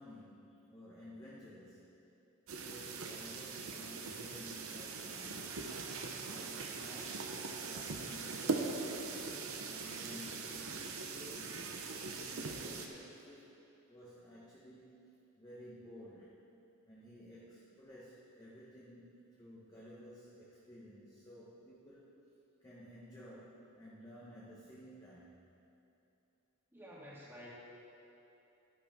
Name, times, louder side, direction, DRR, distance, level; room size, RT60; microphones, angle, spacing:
voice 1, 0.0-2.1 2.5-5.6 6.3-9.1 9.7-13.6 13.9-15.0 15.4-16.4 16.9-22.1 22.6-25.4, equal, 20° left, -6 dB, 1.1 m, -54 dB
sound 1, 2.5-12.9, right 4 dB, 80° right, 0.9 m, -41 dB
voice 2, 26.7-27.5, equal, 10° right, -7 dB, 2.1 m, -51 dB
11.5 x 10.0 x 3.6 m, 3.0 s
head